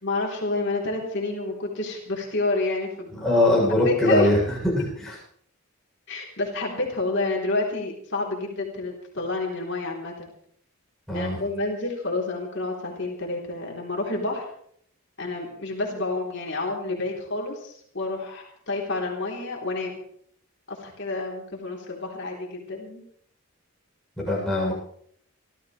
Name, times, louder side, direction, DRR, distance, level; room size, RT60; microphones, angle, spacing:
voice 1, 0.0-3.3 3.7-4.9 6.1-10.3 11.1-14.4 15.2-20.0 20.7-23.0, left 2 dB, 55° left, -1 dB, 3.6 m, -29 dB
voice 2, 3.2-4.4 4.7-5.1 11.1-11.4 24.3-24.7, left 1 dB, ahead, -5 dB, 7.6 m, -21 dB
28.5 x 13.0 x 3.3 m, 0.65 s
head